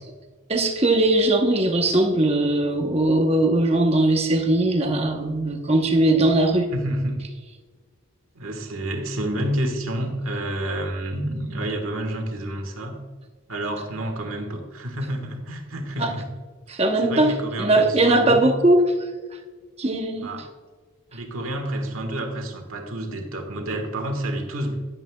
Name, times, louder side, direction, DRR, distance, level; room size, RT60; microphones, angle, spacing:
voice 1, 0.5-6.7 16.0-16.1 16.7-18.8 19.8-20.3, right 2 dB, 30° right, 4 dB, 0.9 m, -20 dB
voice 2, 6.7-7.2 8.3-13.0 13.5-16.3 17.0-18.5 20.2-20.5 21.1-24.8, right 1 dB, 80° right, 4 dB, 1.6 m, -29 dB
11.0 x 9.5 x 2.3 m, 1.4 s
head